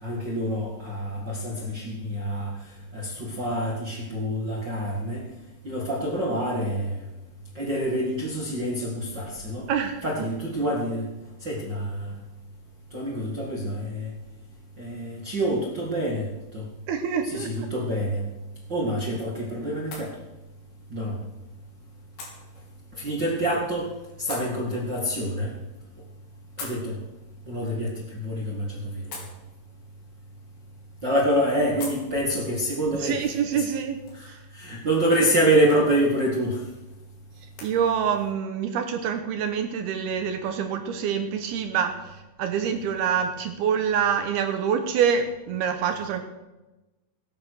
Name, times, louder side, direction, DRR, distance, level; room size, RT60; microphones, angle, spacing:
voice 1, 0.0-2.5 2.9-5.2 5.6-7.0 7.5-9.6 10.0-11.1 11.4-12.1 12.9-14.1 14.8-16.7 17.2-18.2 18.7-20.1 20.9-21.2 23.0-23.9 24.2-25.5 26.6-27.0 27.5-29.2 31.0-33.7 34.1-36.6, right 1 dB, 45° right, -2 dB, 1.4 m, -27 dB
voice 2, 9.7-10.3 16.9-17.7 33.0-34.4 37.6-42.1 42.4-46.2, right 7 dB, 75° right, 6 dB, 2.4 m, -26 dB
sound 1, 18.2-37.7, left 3 dB, 55° left, 5.5 m, -48 dB
18.0 x 10.5 x 6.3 m, 1.1 s
omnidirectional pair, 5.5 m